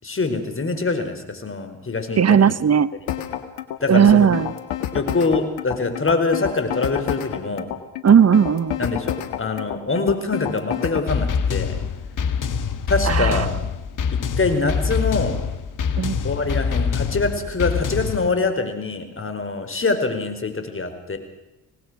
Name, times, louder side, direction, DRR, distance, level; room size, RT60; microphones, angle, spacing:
voice 1, 0.0-2.5 3.8-4.3 4.9-7.7 8.8-11.7 12.9-13.5 14.1-15.4 16.2-21.2, left 3 dB, 35° left, 8 dB, 4.7 m, -24 dB
voice 2, 2.2-2.9 3.9-4.5 8.0-8.8 13.1-13.5 16.0-16.2, right 8 dB, 40° right, 16 dB, 1.3 m, -16 dB
sound 1, 3.1-11.1, left 11 dB, 85° left, 1.6 m, -29 dB
sound 2, 11.1-18.3, left 6 dB, 55° left, 1.7 m, -25 dB
25.5 x 18.5 x 6.3 m, 0.98 s
hypercardioid pair, 50°, 38 cm